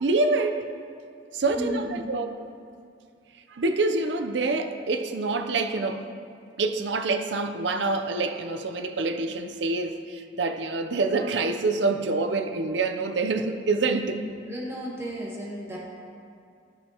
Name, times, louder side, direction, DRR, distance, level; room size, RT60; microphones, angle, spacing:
voice 1, 0.0-0.7 1.3-2.4 3.5-6.1 6.6-14.2, right 3 dB, 70° right, 7 dB, 0.6 m, -26 dB
voice 2, 1.5-2.1 14.2-15.8, equal, 15° right, -6 dB, 1.6 m, -34 dB
15.5 x 6.5 x 2.9 m, 2.4 s
head